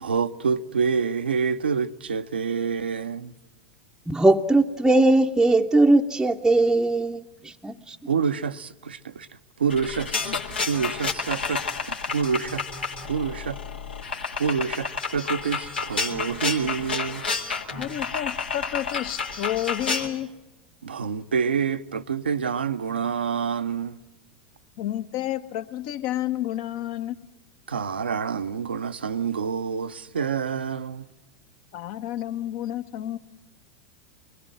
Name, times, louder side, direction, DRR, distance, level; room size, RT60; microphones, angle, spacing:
voice 1, 0.0-3.3 8.1-9.3 9.6-12.6 13.1-13.6 14.4-17.3 20.8-24.0 27.7-31.1, right 6 dB, 85° right, 0.8 m, -27 dB
voice 2, 4.1-8.0, right 2 dB, 5° right, 0.8 m, -20 dB
sound 1, 9.7-20.1, left 5 dB, 85° left, 2.2 m, -30 dB
voice 3, 17.8-20.3 24.8-27.2 31.7-33.2, left 13 dB, 55° left, 1.2 m, -30 dB
23.5 x 21.0 x 9.0 m
hypercardioid pair, 90°, 5 cm